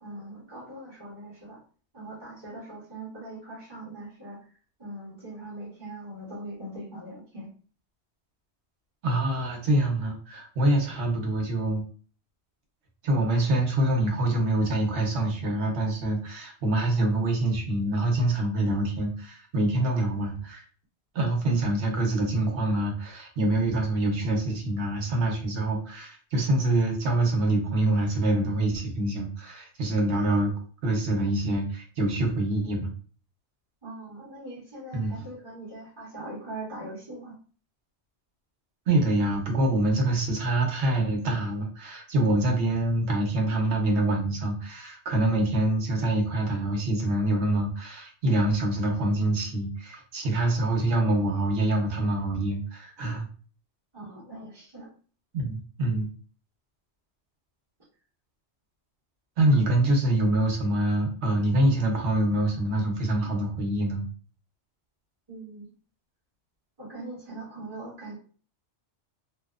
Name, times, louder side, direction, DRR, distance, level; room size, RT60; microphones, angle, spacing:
voice 1, 0.0-1.6 1.9-4.4 4.8-7.5 33.8-37.3 53.9-54.9 65.3-65.7 66.8-68.2, right 1 dB, 25° right, -6 dB, 0.9 m, -41 dB
voice 2, 9.0-11.8 13.0-20.7 21.1-30.5 30.8-32.9 34.9-35.2 38.9-53.3 55.3-56.1 59.4-64.0, right 1 dB, 75° right, 1 dB, 1.1 m, -25 dB
2.8 x 2.1 x 2.3 m, 0.40 s
omnidirectional pair, 1.1 m